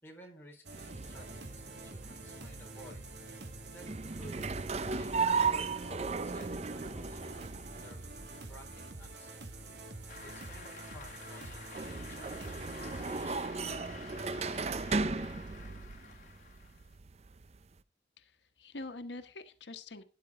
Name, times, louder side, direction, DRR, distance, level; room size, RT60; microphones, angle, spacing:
voice 1, 0.0-3.0 3.7-3.9 4.1-5.2 5.4-7.5 7.8-9.4 10.3-13.3 13.6-15.2, equal, 10° left, -1 dB, 4.1 m, -55 dB
sound 1, 0.6-13.3, right 2 dB, 75° right, 1.8 m, -47 dB
sound 2, 0.7-17.8, right 4 dB, 35° right, 0.5 m, -37 dB
Cheering / Applause, 10.1-16.9, left 4 dB, 45° left, 2.3 m, -50 dB
voice 2, 18.2-20.0, left 2 dB, 85° left, 8 dB, 1.2 m, -45 dB
13.0 x 10.0 x 3.6 m, 0.35 s
head